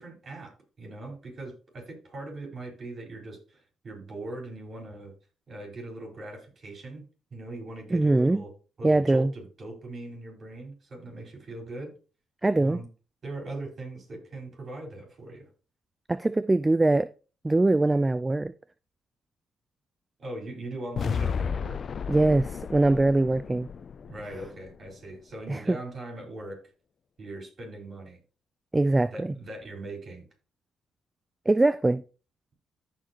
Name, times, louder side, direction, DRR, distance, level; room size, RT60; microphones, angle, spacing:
voice 1, 0.0-5.1 5.5-8.5 8.8-11.9 12.6-12.9 13.2-15.5 20.2-21.8 24.0-26.6 27.2-28.2 29.0-30.2, right 2 dB, 45° right, 4.9 m, -40 dB
voice 2, 7.9-8.4 8.8-9.3 12.4-12.8 16.1-17.1 17.4-18.5 22.1-23.7 25.5-25.8 28.7-29.3 31.5-32.0, right 2 dB, 20° right, 0.4 m, -22 dB
sound 1, 21.0-25.1, left 6 dB, 50° left, 0.4 m, -33 dB
14.5 x 4.8 x 3.0 m
cardioid pair, 75°, 0 cm